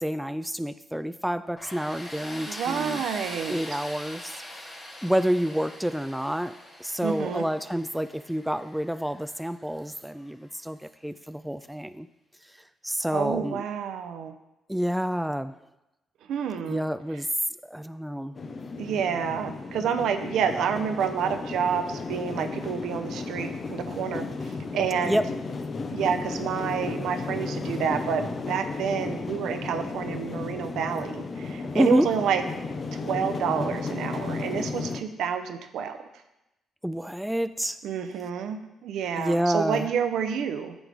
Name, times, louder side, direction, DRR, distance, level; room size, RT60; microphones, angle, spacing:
voice 1, 0.0-3.0 3.5-4.4 5.0-12.1 12.8-13.7 14.7-15.5 16.7-17.3 17.6-18.4 25.0-25.2 31.7-32.1 36.8-37.8 39.2-39.9, equal, 5° right, 12 dB, 0.3 m, -28 dB
Tools, 1.6-10.3, left 1 dB, 20° left, 2.6 m, -42 dB
voice 2, 2.5-3.6 7.0-7.5 13.1-14.3 16.3-16.8 18.8-24.3 24.7-25.2 25.9-32.4 32.9-36.0 37.8-40.8, right 7 dB, 80° right, 8 dB, 0.7 m, -29 dB
sound 1, 18.3-35.0, left 4 dB, 40° left, 0.7 m, -34 dB
9.4 x 6.1 x 3.5 m, 0.93 s
cardioid pair, 90°, 0 cm